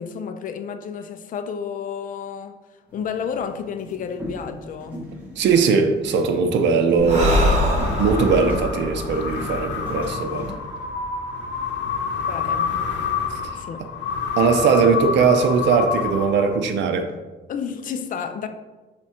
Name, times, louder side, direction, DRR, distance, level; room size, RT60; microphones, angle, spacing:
voice 1, 0.0-2.6 2.9-5.1 12.2-12.9 13.6-13.9 17.5-18.5, left 7 dB, 45° left, 0.5 m, -31 dB
sound 1, 2.9-10.5, equal, 10° right, 1.8 m, -38 dB
voice 2, 5.4-7.5 8.0-10.5 13.3-13.6 14.4-17.1, right 5 dB, 75° right, 0.7 m, -20 dB
Breathing, 7.0-10.5, left 1 dB, 35° right, 1.5 m, -24 dB
sound 2, 7.1-16.8, left 6 dB, 80° left, 0.9 m, -28 dB
6.1 x 3.6 x 4.3 m
cardioid pair, 160°, 19 cm